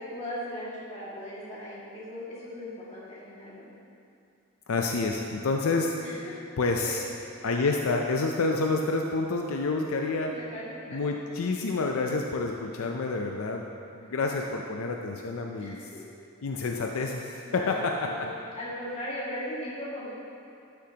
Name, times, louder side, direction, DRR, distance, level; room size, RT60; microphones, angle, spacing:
voice 1, 0.0-3.7 6.0-6.1 6.8-7.0 10.0-11.0 15.6-16.0 17.4-18.3 18.6-20.1, equal, 30° left, -8 dB, 2.1 m, -38 dB
voice 2, 4.7-5.9 6.6-7.1 7.4-10.4 10.9-13.6 13.9-15.9 16.4-18.3, left 3 dB, 75° left, 2 dB, 0.5 m, -28 dB
12.5 x 7.0 x 2.9 m, 2.6 s
head